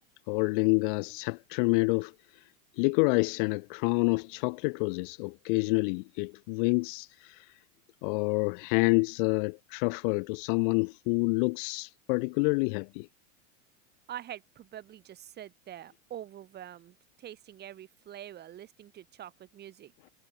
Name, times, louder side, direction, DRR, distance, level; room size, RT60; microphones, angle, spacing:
voice 1, 0.3-2.1 2.8-7.5 8.0-13.1, left 32 dB, 40° left, 0.7 m, -28 dB
voice 2, 14.1-20.1, right 11 dB, 25° right, 4.5 m, -45 dB
supercardioid pair, 155°, 40 cm